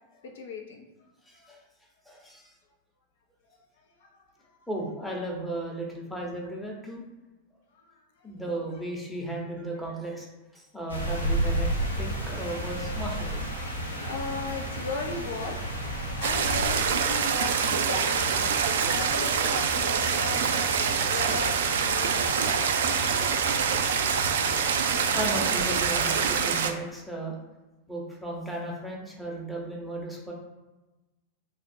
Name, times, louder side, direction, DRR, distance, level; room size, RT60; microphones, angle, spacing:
voice 1, 0.2-0.9 4.0-4.6 7.7-7.9 8.2-8.3 14.0-22.5, left 3 dB, 60° left, 2 dB, 0.7 m, -37 dB
voice 2, 1.3-1.6 2.1-2.5 4.7-7.0 8.2-10.3 10.5-11.7 12.0-13.4 25.1-27.4 27.9-30.3, right 1 dB, ahead, -2 dB, 0.9 m, -35 dB
sound 1, 10.9-26.4, right 1 dB, 85° left, 1.0 m, -33 dB
sound 2, 16.2-26.7, right 7 dB, 60° right, 0.3 m, -26 dB
3.3 x 2.4 x 4.3 m, 1.1 s
figure-of-eight pair, 90°, 0 cm